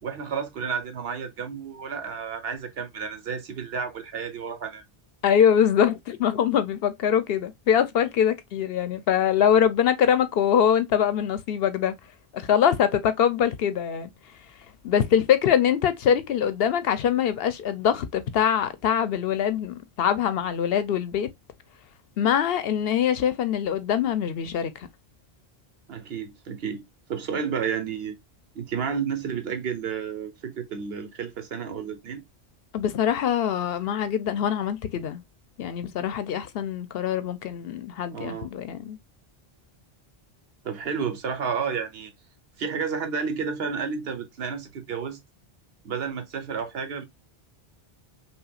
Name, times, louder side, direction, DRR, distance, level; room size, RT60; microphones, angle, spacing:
voice 1, 0.0-4.8 25.9-28.2 28.5-32.2 38.1-38.5 40.6-42.1 42.6-45.2 45.8-47.0, right 6 dB, 75° right, 1.1 m, -31 dB
voice 2, 5.2-12.0 12.3-14.1 14.8-21.3 22.2-24.9 32.7-35.2 35.6-39.0, left 8 dB, 75° left, 0.8 m, -23 dB
5.6 x 2.3 x 2.3 m
omnidirectional pair, 1.0 m